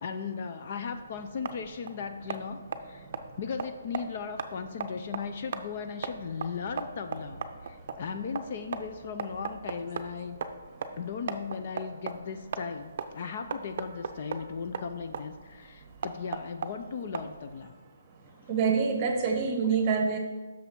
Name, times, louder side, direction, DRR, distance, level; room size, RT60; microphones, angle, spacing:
voice 1, 0.0-3.1 3.4-10.4 11.0-17.7, left 6 dB, 40° left, 8 dB, 0.5 m, -37 dB
sound 1, 0.8-17.6, right 5 dB, 45° right, 0.6 m, -39 dB
voice 2, 18.5-20.2, right 5 dB, 25° right, 3 dB, 1.1 m, -26 dB
6.3 x 5.6 x 6.1 m, 1.3 s
hypercardioid pair, 165°, 0 cm